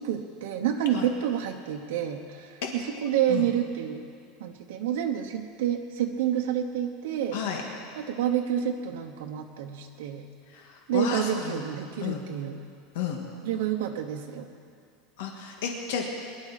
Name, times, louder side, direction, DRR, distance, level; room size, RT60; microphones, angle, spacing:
voice 1, 0.0-4.1 4.4-7.4 8.0-10.3 10.9-12.7 13.4-14.5, right 9 dB, 75° right, 1 dB, 1.0 m, -29 dB
voice 2, 7.3-7.6 10.5-11.6 12.0-12.2 12.9-13.2 15.2-16.1, left 7 dB, 70° left, 1 dB, 1.7 m, -32 dB
22.5 x 11.5 x 4.2 m, 2.3 s
supercardioid pair, 175°, 0 cm